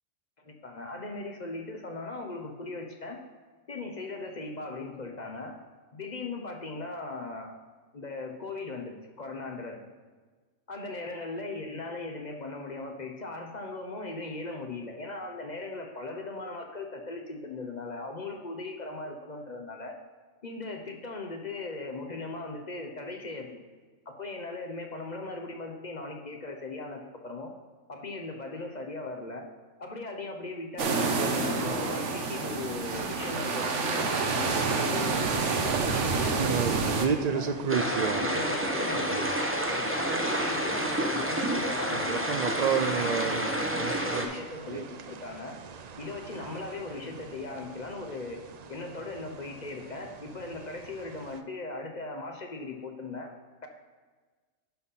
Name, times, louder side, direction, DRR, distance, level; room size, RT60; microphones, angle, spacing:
voice 1, 0.4-3.2 3.7-5.6 5.9-7.6 7.9-9.8 10.7-19.9 20.4-23.6 24.1-27.5 27.9-29.5 29.8-37.5 37.9-39.3 39.7-42.4 42.9-45.6 46.0-48.4 48.7-53.3, left 3 dB, 40° left, 3 dB, 0.9 m, -38 dB
sound 1, 30.8-37.1, right 4 dB, 65° right, 1.2 m, -28 dB
sound 2, 34.0-51.4, right 6 dB, 85° right, 0.3 m, -35 dB
sound 3, 37.7-44.3, right 1 dB, 10° right, 0.8 m, -29 dB
11.0 x 4.1 x 5.6 m, 1.4 s
omnidirectional pair, 1.4 m